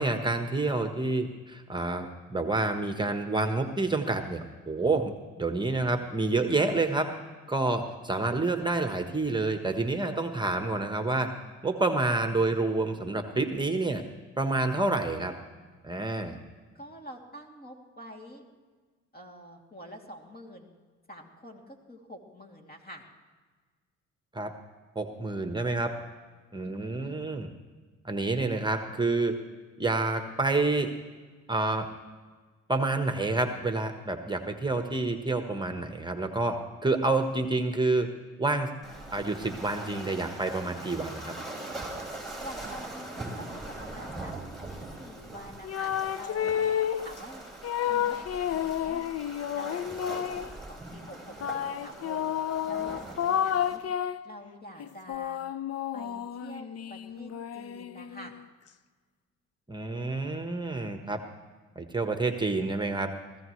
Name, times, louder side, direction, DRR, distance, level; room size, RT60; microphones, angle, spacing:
voice 1, 0.0-7.1 7.5-11.3 11.6-14.0 14.4-15.4 15.8-16.4 24.3-24.5 24.9-25.9 26.5-27.5 28.0-29.4 29.8-30.9 31.5-31.9 32.7-38.1 38.4-38.7 39.1-41.3 59.7-61.2 61.8-63.1, right 2 dB, 15° right, 6 dB, 1.2 m, -28 dB
voice 2, 16.7-18.4 19.1-20.7 21.1-23.0 26.6-27.2 42.4-44.3 45.0-47.4 47.9-48.2 48.5-49.1 49.5-50.1 50.7-52.3 52.7-53.8 54.2-55.4 55.9-58.3, equal, 30° left, 2 dB, 2.8 m, -47 dB
Waves surf, 38.8-53.8, right 2 dB, ahead, 4.2 m, -42 dB
sound 1, 45.6-47.1 47.6-50.5 51.4-54.3 54.8-58.4, left 9 dB, 55° left, 0.6 m, -31 dB
21.0 x 15.5 x 3.2 m, 1.4 s
cardioid pair, 80°, 30 cm